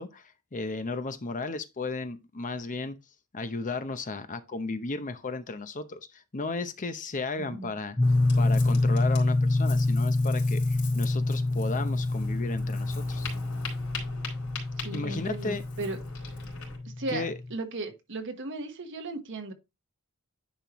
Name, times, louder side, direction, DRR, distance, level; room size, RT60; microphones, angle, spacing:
voice 1, 0.0-3.0 3.3-8.0 8.4-13.3 14.9-15.6 17.1-17.4, left 3 dB, 35° left, 0.8 m, -34 dB
voice 2, 7.4-7.7 14.8-16.0 16.8-19.5, right 2 dB, 60° right, 1.3 m, -36 dB
Ocean, 8.0-16.8, left 4 dB, 70° left, 3.7 m, -43 dB
sound 1, 8.0-17.5, left 2 dB, 15° left, 0.5 m, -27 dB
10.5 x 4.4 x 3.1 m
head